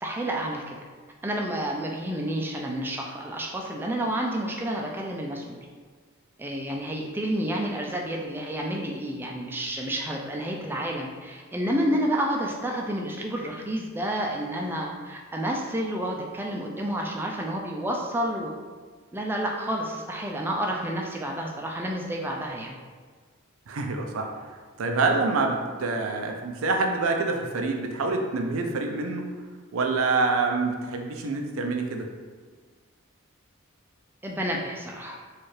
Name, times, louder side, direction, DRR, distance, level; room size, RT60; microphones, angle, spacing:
voice 1, 0.0-0.8 1.2-5.7 6.4-18.5 19.1-22.8 34.2-35.2, right 1 dB, 10° right, -1 dB, 0.3 m, -30 dB
voice 2, 23.7-24.3 24.8-29.3 29.7-32.1, right 3 dB, 85° right, 3 dB, 0.5 m, -26 dB
4.3 x 2.4 x 3.2 m, 1.5 s
head